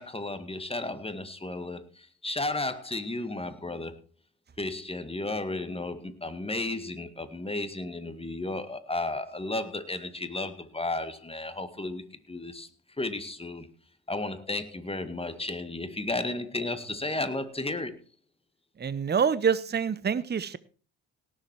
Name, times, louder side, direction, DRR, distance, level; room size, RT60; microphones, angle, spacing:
voice 1, 0.0-4.0 4.6-12.7 13.0-13.7 14.1-18.0, left 2 dB, 15° left, 2.0 m, -33 dB
voice 2, 18.8-20.6, right 7 dB, 25° right, 0.8 m, -26 dB
17.5 x 7.6 x 4.6 m
hypercardioid pair, 50°, 38 cm